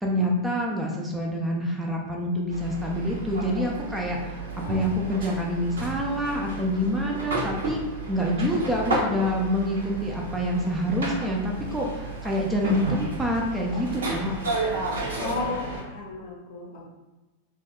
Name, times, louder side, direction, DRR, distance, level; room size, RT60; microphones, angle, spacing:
voice 1, 0.0-4.4 4.7-7.8 8.1-14.3, equal, 10° right, -1 dB, 0.4 m, -27 dB
sound 1, 2.5-15.8, right 2 dB, 65° right, 0.6 m, -32 dB
voice 2, 15.2-16.8, left 3 dB, 45° left, -1 dB, 0.7 m, -33 dB
2.7 x 2.2 x 3.4 m, 1.1 s
figure-of-eight pair, 90°, 0 cm